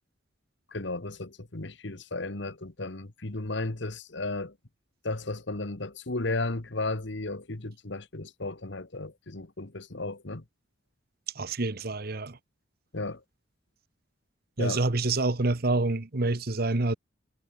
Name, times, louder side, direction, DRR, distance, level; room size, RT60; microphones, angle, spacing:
voice 1, 0.7-4.5 5.0-10.4 12.9-13.2 14.6-14.8, left 2 dB, 65° left, 1.6 m, -34 dB
voice 2, 11.4-12.4 14.6-16.9, right 2 dB, 50° right, 1.2 m, -27 dB
head